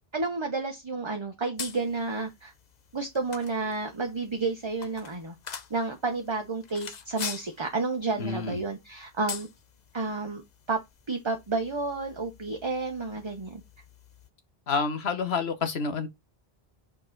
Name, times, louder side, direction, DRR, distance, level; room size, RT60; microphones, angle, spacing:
voice 1, 0.1-2.5 2.9-5.3 5.7-9.5 9.9-10.4 10.7-10.8 11.1-13.6, right 3 dB, 30° right, 0.9 m, -31 dB
sound 1, 1.6-14.3, left 7 dB, 50° left, 0.7 m, -45 dB
voice 2, 8.2-8.6 14.7-16.1, left 5 dB, 80° left, 1.4 m, -28 dB
6.6 x 4.2 x 3.8 m
omnidirectional pair, 1.0 m